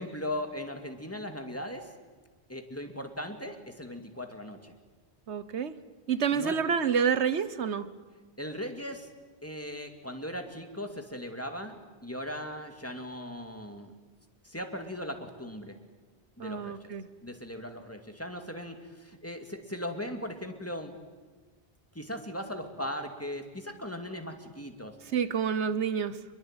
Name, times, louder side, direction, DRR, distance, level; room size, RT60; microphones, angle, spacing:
voice 1, 0.0-1.9 2.5-4.7 6.3-6.6 8.4-9.1 9.4-13.9 14.4-15.8 16.4-16.9 17.2-21.0 21.9-25.0, left 1 dB, 15° left, 5 dB, 2.5 m, -38 dB
voice 2, 5.3-5.7 6.1-7.9 16.4-17.0 25.1-26.2, right 7 dB, 90° right, 14 dB, 1.4 m, -28 dB
26.0 x 22.0 x 9.0 m, 1.3 s
omnidirectional pair, 1.1 m